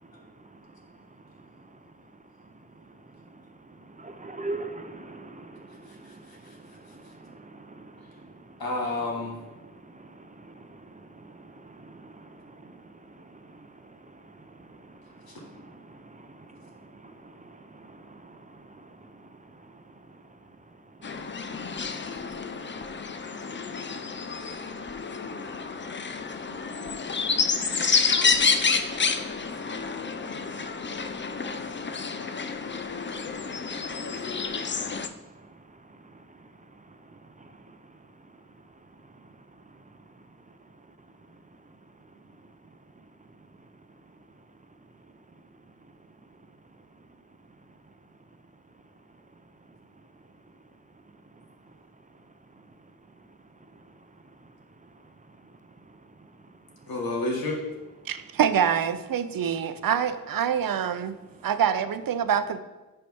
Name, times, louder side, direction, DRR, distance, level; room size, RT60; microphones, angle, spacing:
voice 1, 0.2-0.6 1.6-1.7 3.3-3.4 3.8-8.6 9.6-20.4 26.2-26.9 27.5-27.7 28.1-29.8 30.2-31.1 31.4-32.0 32.3-32.4 32.7-32.8 33.4-35.5 36.1-36.2 37.1-37.8, right 2 dB, 20° right, 0.6 m, -46 dB
voice 2, 5.9-6.6 8.6-9.4 15.3-15.4 56.9-57.6, left 2 dB, 90° left, 1.6 m, -31 dB
sound 1, 21.0-35.1, left 5 dB, 35° left, 0.5 m, -29 dB
voice 3, 58.1-61.2 61.4-62.6, right 8 dB, 75° right, 0.5 m, -25 dB
10.5 x 4.4 x 3.4 m
wide cardioid pair, 80°, 35 cm